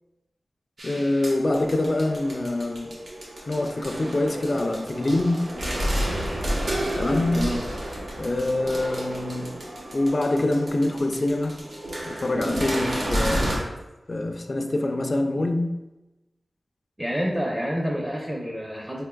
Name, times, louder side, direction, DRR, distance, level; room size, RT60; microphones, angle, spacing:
voice 1, 0.8-3.0 3.5-5.5 6.9-7.5 8.2-9.6 9.9-11.6 12.1-13.7 14.1-15.8, left 2 dB, 50° left, 0.4 m, -25 dB
sound 1, 0.8-13.6, equal, 85° right, 1.0 m, -31 dB
voice 2, 17.0-19.0, equal, 20° right, 0.6 m, -28 dB
4.4 x 3.4 x 2.2 m
wide cardioid pair, 70°, 0 cm